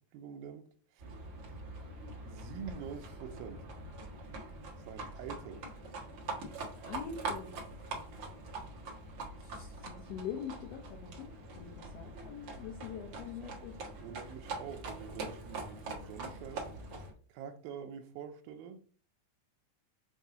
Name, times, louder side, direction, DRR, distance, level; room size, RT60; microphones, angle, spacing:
voice 1, 0.1-1.0 2.2-3.7 4.9-5.6 13.2-13.3 14.0-16.8 17.3-18.8, right 7 dB, 85° right, 2.5 m, -46 dB
Livestock farm animals working animals, 1.0-17.1, right 3 dB, 55° right, 1.6 m, -44 dB
voice 2, 6.8-7.5 9.4-11.3 11.5-13.8, left 8 dB, 80° left, 1.4 m, -44 dB
7.2 x 2.7 x 5.0 m
omnidirectional pair, 4.1 m